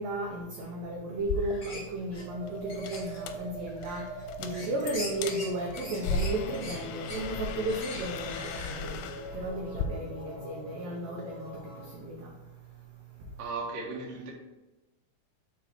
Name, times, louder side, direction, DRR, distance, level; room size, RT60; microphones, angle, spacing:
voice 1, 0.0-4.1 4.4-9.0 9.3-11.5 12.0-12.3, right 1 dB, 75° right, 2.2 m, -34 dB
sound 1, 1.2-9.9, left 4 dB, 80° left, 2.5 m, -37 dB
sound 2, 1.4-1.9 2.1-2.3 2.7-3.2 3.7-4.2 4.5-8.9, left 1 dB, 60° left, 0.7 m, -43 dB
sound 3, 2.2-12.0, equal, 25° left, 2.5 m, -44 dB
voice 2, 13.4-14.3, right 3 dB, 60° right, 1.9 m, -36 dB
6.8 x 5.2 x 4.5 m
omnidirectional pair, 5.1 m